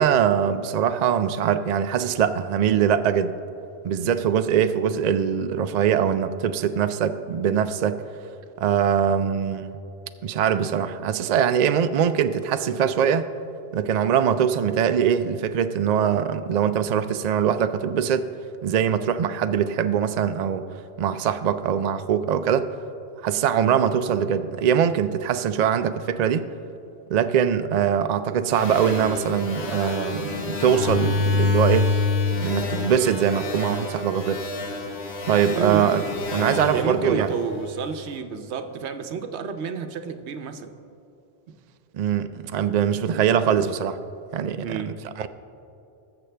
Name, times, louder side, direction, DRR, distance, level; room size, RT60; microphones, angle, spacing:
voice 1, 0.0-3.3 3.8-8.0 8.6-9.7 10.2-13.3 13.7-18.3 18.6-20.7 21.0-22.7 23.2-26.5 27.1-31.9 32.4-34.4 35.2-36.0 36.3-37.3 41.9-44.0 44.3-44.7 45.2-45.3, right 8 dB, 60° right, 10 dB, 0.4 m, -22 dB
sound 1, 28.5-38.0, left 3 dB, 75° left, 1.3 m, -27 dB
voice 2, 35.5-36.1 36.7-40.7 44.6-45.1, right 6 dB, 80° right, 8 dB, 1.0 m, -30 dB
20.0 x 7.1 x 3.3 m, 2.7 s
omnidirectional pair, 1.1 m